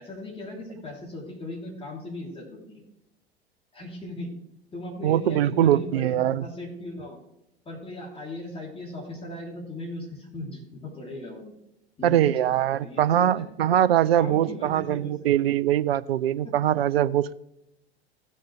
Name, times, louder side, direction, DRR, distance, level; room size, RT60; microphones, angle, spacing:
voice 1, 0.0-2.8 3.7-4.3 4.7-7.2 7.6-11.5 12.0-12.6 12.8-13.4 14.1-15.1 16.4-16.5, left 2 dB, 20° left, -3 dB, 3.4 m, -38 dB
voice 2, 5.0-6.5 12.0-17.3, right 11 dB, 70° right, 17 dB, 0.5 m, -22 dB
16.5 x 6.5 x 3.3 m, 0.84 s
figure-of-eight pair, 85°, 31 cm